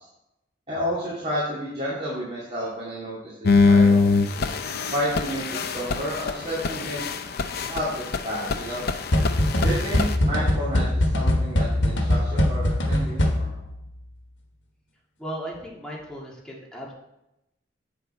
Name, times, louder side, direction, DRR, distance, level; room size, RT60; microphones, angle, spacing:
voice 1, 0.7-4.1 4.9-7.0 7.7-8.8 9.6-13.6, equal, 35° right, -8 dB, 2.6 m, -31 dB
sound 1, 3.5-10.2, left 4 dB, 60° left, 0.6 m, -23 dB
sound 2, 9.1-13.7, left 1 dB, 85° left, 1.3 m, -22 dB
voice 2, 15.2-16.9, right 1 dB, 5° left, -4 dB, 2.1 m, -36 dB
8.2 x 7.0 x 4.4 m, 0.88 s
head